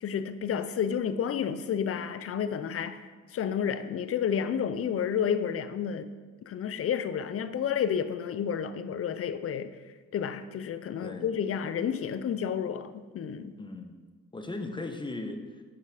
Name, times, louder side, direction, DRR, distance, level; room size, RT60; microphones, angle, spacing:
voice 1, 0.0-3.0 3.3-6.1 6.5-9.8 10.1-13.6, left 8 dB, 50° left, 0.6 m, -30 dB
voice 2, 13.6-13.9 14.3-15.6, left 2 dB, 15° left, 1.0 m, -37 dB
8.0 x 5.5 x 5.0 m
cardioid pair, 90°, 30 cm